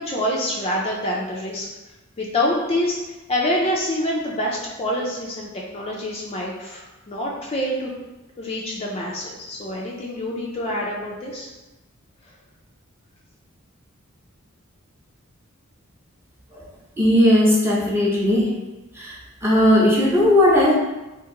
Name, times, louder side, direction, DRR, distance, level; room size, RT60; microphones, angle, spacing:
voice 1, 0.0-1.7 2.2-3.0 3.3-7.9 8.4-11.5, left 1 dB, 30° left, -3 dB, 0.4 m, -26 dB
voice 2, 17.0-18.6 18.9-20.7, left 1 dB, 10° right, -4 dB, 0.6 m, -17 dB
2.8 x 2.5 x 3.7 m, 1.1 s
head